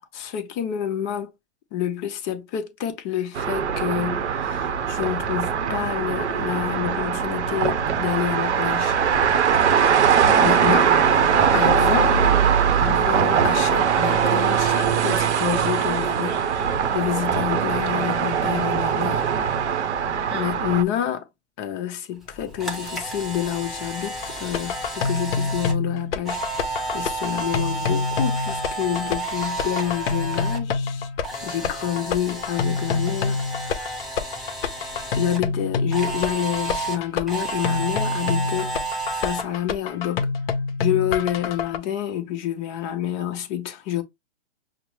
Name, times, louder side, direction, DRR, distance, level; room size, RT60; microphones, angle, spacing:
voice 1, 0.1-1.3 1.7-9.0 9.6-10.0 10.4-11.2 11.5-12.5 12.8-19.2 20.3-21.3 21.6-31.1 31.4-33.9 35.1-38.7 39.1-40.3 40.8-44.0, left 11 dB, 30° left, 0.7 m, -28 dB
sound 1, 3.3-20.8, right 7 dB, 80° right, 0.8 m, -21 dB
Camera, 22.2-30.6 30.9-35.4 35.9-39.4, right 3 dB, ahead, 0.4 m, -31 dB
sound 2, 24.2-41.8, left 5 dB, 60° left, 0.7 m, -27 dB
5.8 x 2.0 x 3.1 m
hypercardioid pair, 135°, 34 cm